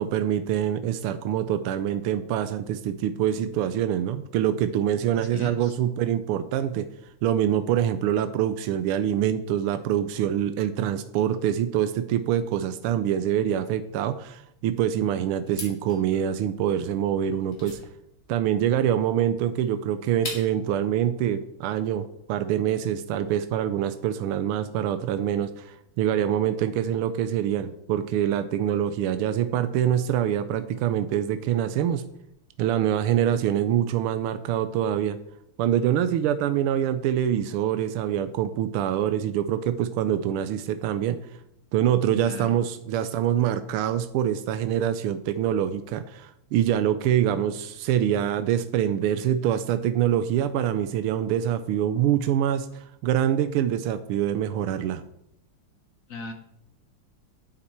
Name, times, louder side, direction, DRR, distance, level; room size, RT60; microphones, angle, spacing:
voice 1, 0.0-6.9 7.2-17.8 18.3-32.0 32.6-35.2 35.6-41.2 41.7-55.0, right 10 dB, 85° right, 11 dB, 1.5 m, -25 dB
voice 2, 5.2-5.8 42.2-42.6 56.1-56.3, left 4 dB, 55° left, 6 dB, 0.9 m, -37 dB
sound 1, 15.5-20.7, left 1 dB, 35° left, 2.9 m, -41 dB
9.6 x 8.7 x 4.5 m, 0.76 s
omnidirectional pair, 2.4 m